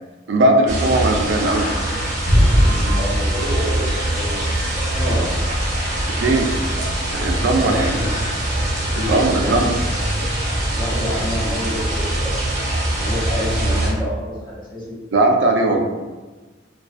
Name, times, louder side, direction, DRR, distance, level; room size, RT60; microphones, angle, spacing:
voice 1, 0.3-1.7 6.2-6.5 7.1-8.0 9.1-9.7 15.1-15.8, right 2 dB, 70° right, 3 dB, 0.3 m, -18 dB
sound 1, 0.7-13.9, right 1 dB, 40° right, 0.7 m, -22 dB
sound 2, 1.4-9.6, equal, 70° left, 0.6 m, -37 dB
voice 2, 2.6-5.4 7.4-8.7 8.9-9.6 10.8-12.3 13.0-15.0 15.7-15.8, equal, 25° left, -6 dB, 0.7 m, -28 dB
2.3 x 2.3 x 2.4 m, 1.3 s
head